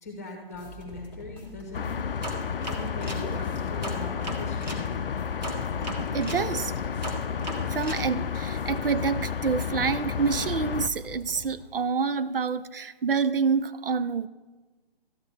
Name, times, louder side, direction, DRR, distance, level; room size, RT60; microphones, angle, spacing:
voice 1, 0.0-2.0 2.7-4.9, left 2 dB, 15° left, 2 dB, 1.1 m, -41 dB
sound 1, 0.5-11.5, left 2 dB, 10° right, 1.5 m, -45 dB
sound 2, 1.7-10.9, left 7 dB, 65° left, 0.5 m, -31 dB
sound 3, 2.2-4.9 5.4-8.1, right 2 dB, 45° right, 1.7 m, -37 dB
voice 2, 6.1-6.7 7.7-14.3, right 5 dB, 65° right, 14 dB, 0.5 m, -27 dB
13.0 x 9.5 x 3.3 m, 1.3 s
hypercardioid pair, 180°, 30 cm